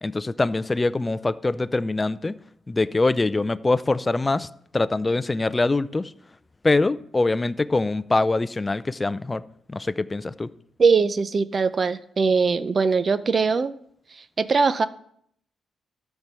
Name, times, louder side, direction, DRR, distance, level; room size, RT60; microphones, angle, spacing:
voice 1, 0.0-2.4 2.7-4.5 4.7-6.1 6.6-9.4 9.7-10.5, left 2 dB, 20° left, 0.4 m, -23 dB
voice 2, 10.8-13.7 14.1-14.9, right 5 dB, 40° right, 0.6 m, -21 dB
13.0 x 4.5 x 6.9 m
cardioid pair, 90°, 0 cm